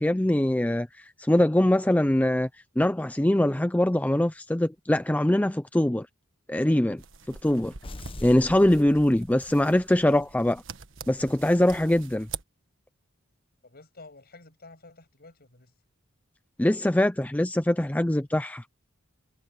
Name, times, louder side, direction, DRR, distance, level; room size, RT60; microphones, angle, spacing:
voice 1, 0.0-2.5 2.8-6.1 6.5-7.0 7.4-7.7 8.2-10.6 11.1-12.3 16.6-18.6, left 1 dB, 5° left, 0.4 m, -23 dB
sound 1, 7.0-12.4, right 6 dB, 65° right, 1.5 m, -44 dB
sound 2, 7.8-9.7, left 1 dB, 25° left, 1.0 m, -42 dB
voice 2, 13.6-15.7, left 3 dB, 50° left, 7.5 m, -50 dB
head